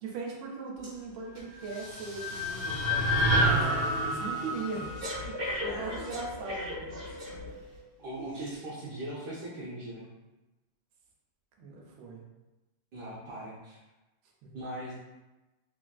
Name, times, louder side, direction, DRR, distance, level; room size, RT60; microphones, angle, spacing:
voice 1, 0.0-3.7 4.0-4.9 5.2-6.9 11.6-12.2 14.4-14.6, right 4 dB, 85° right, -1 dB, 1.4 m, -39 dB
Breathing, 0.8-1.0 1.3-7.8 8.4-8.5, left 1 dB, 40° right, 0.9 m, -40 dB
sound 1, 1.5-5.8, equal, 80° left, 1.4 m, -29 dB
voice 2, 8.0-10.1 12.9-13.8 14.5-14.9, right 1 dB, 70° right, -8 dB, 1.1 m, -40 dB
3.4 x 2.5 x 2.3 m, 1.1 s
omnidirectional pair, 2.2 m